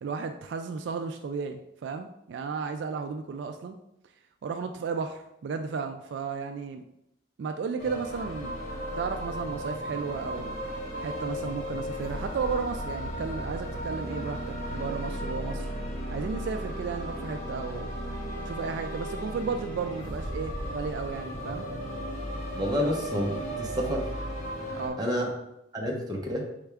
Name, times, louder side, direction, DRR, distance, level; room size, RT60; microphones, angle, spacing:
voice 1, 0.0-3.8 4.4-6.8 7.4-8.6 9.0-10.5 11.0-15.7 16.1-17.9 18.5-21.7 22.8-23.0 24.7-25.0, right 5 dB, 65° right, 7 dB, 0.3 m, -34 dB
sound 1, 7.8-24.9, equal, 40° left, 1.1 m, -35 dB
voice 2, 22.5-24.1 25.0-25.3 25.7-26.5, equal, 20° right, -1 dB, 0.8 m, -29 dB
4.5 x 3.5 x 3.4 m, 0.83 s
head